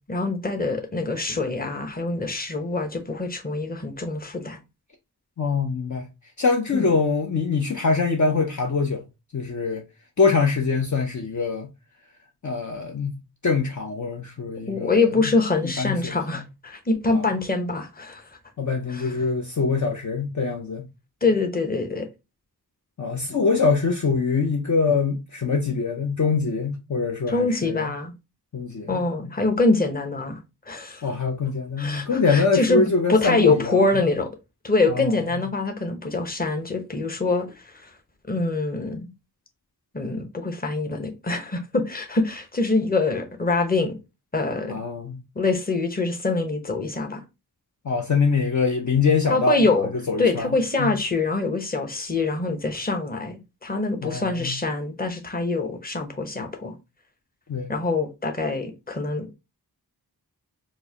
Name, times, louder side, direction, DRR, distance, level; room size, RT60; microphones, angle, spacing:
voice 1, 0.1-4.6 6.7-6.9 14.7-18.2 18.9-19.1 21.2-22.1 27.3-28.1 28.9-30.4 30.7-31.0 31.8-34.3 34.6-37.9 38.3-39.1 39.9-43.9 44.3-44.8 45.4-47.2 49.3-49.9 50.2-56.7 57.7-59.3, left 3 dB, 25° left, 0.9 m, -24 dB
voice 2, 5.4-6.1 6.4-9.0 9.3-9.8 10.2-11.7 12.4-15.0 15.8-16.4 17.1-17.2 18.6-20.9 23.0-27.9 28.5-29.0 31.0-33.8 34.9-35.1 35.4-35.5 44.7-45.2 47.8-49.6 50.1-50.5 50.8-50.9 54.0-54.6 57.5-57.7, left 4 dB, 45° left, 0.6 m, -24 dB
4.6 x 2.1 x 2.8 m
wide cardioid pair, 55°, 39 cm